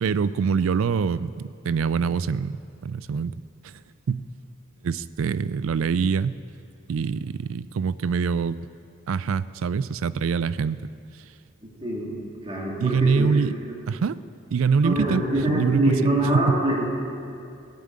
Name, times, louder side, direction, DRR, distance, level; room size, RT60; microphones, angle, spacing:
voice 1, 0.0-3.3 3.6-4.3 4.8-6.4 6.9-8.6 9.1-10.8 12.8-13.5 13.9-14.2 14.5-16.6, right 5 dB, 75° right, 17 dB, 0.4 m, -24 dB
voice 2, 11.6-12.1 12.4-13.3 14.8-16.8, right 1 dB, 25° right, -4 dB, 2.8 m, -24 dB
15.0 x 7.6 x 9.7 m, 2.5 s
head